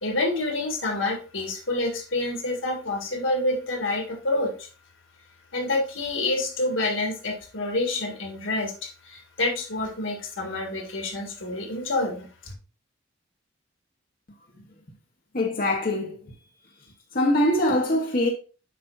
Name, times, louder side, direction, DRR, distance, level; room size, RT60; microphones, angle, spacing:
voice 1, 0.0-4.7 5.5-12.3, left 2 dB, 80° left, 1.9 m, -28 dB
voice 2, 15.3-16.2 17.1-18.3, left 1 dB, 45° left, 1.1 m, -23 dB
7.6 x 5.6 x 2.6 m
head